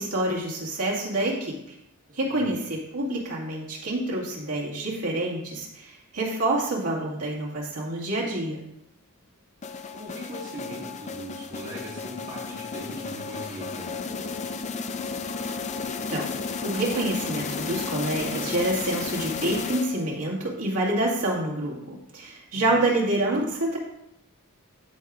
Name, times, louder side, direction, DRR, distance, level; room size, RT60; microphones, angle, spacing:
voice 1, 0.0-1.5 2.2-8.6 16.1-16.3 16.6-23.8, right 1 dB, 85° right, -4 dB, 2.1 m, -27 dB
voice 2, 2.1-2.6 9.9-14.4 22.5-22.7, right 1 dB, 35° right, -5 dB, 1.8 m, -40 dB
sound 1, 9.6-20.3, left 5 dB, 30° left, 0.4 m, -33 dB
13.5 x 4.8 x 2.6 m, 0.81 s
head